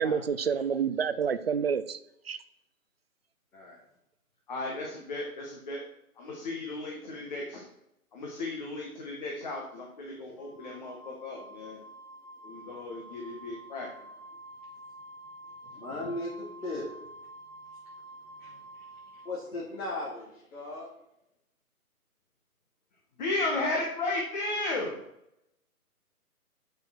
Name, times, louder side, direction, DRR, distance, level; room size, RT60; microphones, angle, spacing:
voice 1, 0.0-2.0 2.3-2.4, right 7 dB, 45° right, 13 dB, 0.5 m, -28 dB
voice 2, 4.5-5.8 6.2-7.6 8.1-11.8 12.4-13.9 23.2-25.0, left 2 dB, 30° left, -1 dB, 1.5 m, -34 dB
Wind instrument woodwind instrument, 10.4-19.3, right 1 dB, 5° left, 1.4 m, -48 dB
voice 3, 15.7-17.0 18.4-18.8 19.1-20.9, left 2 dB, 65° left, -5 dB, 3.4 m, -37 dB
6.8 x 6.6 x 6.3 m, 0.81 s
hypercardioid pair, 155°, 44 cm